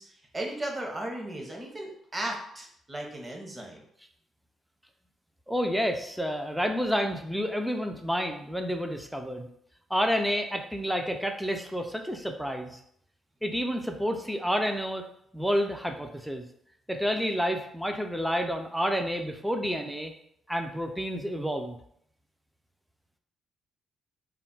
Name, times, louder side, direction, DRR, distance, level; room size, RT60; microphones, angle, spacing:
voice 1, 0.0-3.8, right 1 dB, 20° right, 0 dB, 0.7 m, -36 dB
voice 2, 5.5-9.5 9.9-12.8 13.4-15.0 15.3-16.4 16.9-20.1 20.5-21.8, equal, ahead, 4 dB, 0.3 m, -29 dB
2.3 x 2.1 x 3.8 m, 0.69 s
cardioid pair, 90°, 0 cm